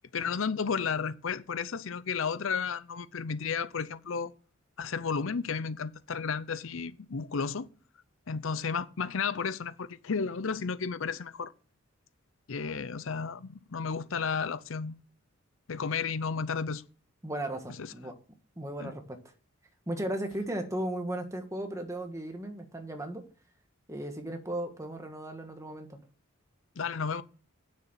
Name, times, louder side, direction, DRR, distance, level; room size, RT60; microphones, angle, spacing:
voice 1, 0.1-4.3 4.8-7.7 8.3-11.5 12.5-14.9 15.7-16.8 17.8-17.9 18.8-18.9 26.8-27.2, left 5 dB, 65° left, 0.6 m, -33 dB
voice 2, 17.2-18.1 18.6-19.2 19.9-23.2 23.9-26.0, right 1 dB, 15° right, 1.6 m, -36 dB
9.6 x 6.8 x 7.3 m
head